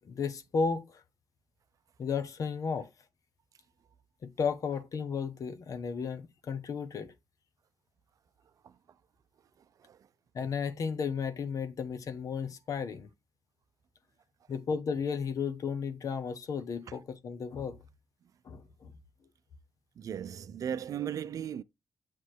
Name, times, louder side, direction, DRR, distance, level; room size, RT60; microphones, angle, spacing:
voice 1, 0.0-1.0 2.0-2.9 4.2-7.1 10.3-13.1 14.5-17.8 18.4-18.9, left 5 dB, 65° left, 1.0 m, -34 dB
voice 2, 20.0-21.6, right 9 dB, 65° right, 0.5 m, -37 dB
7.8 x 3.1 x 4.5 m
supercardioid pair, 45°, 6 cm